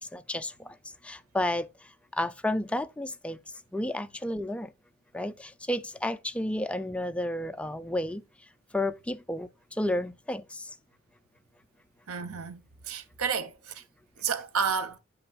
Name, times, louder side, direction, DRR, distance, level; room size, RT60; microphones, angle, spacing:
voice 1, 0.1-0.8 1.0-3.4 3.7-4.7 5.1-8.2 8.7-10.8, left 1 dB, 5° left, 0.4 m, -32 dB
voice 2, 12.1-13.8 14.2-15.0, right 6 dB, 80° right, 0.8 m, -31 dB
8.5 x 5.3 x 2.3 m
head